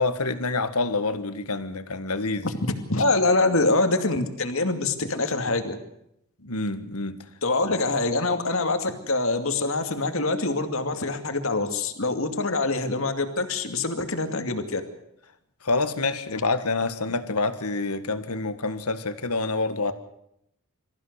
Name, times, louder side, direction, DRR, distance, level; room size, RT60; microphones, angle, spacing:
voice 1, 0.0-2.5 6.4-7.2 7.6-7.8 15.6-19.9, left 3 dB, 90° left, 10 dB, 1.8 m, -27 dB
voice 2, 2.9-5.8 7.4-14.8, left 2 dB, 65° left, 6 dB, 2.5 m, -25 dB
25.0 x 15.0 x 8.1 m, 0.77 s
head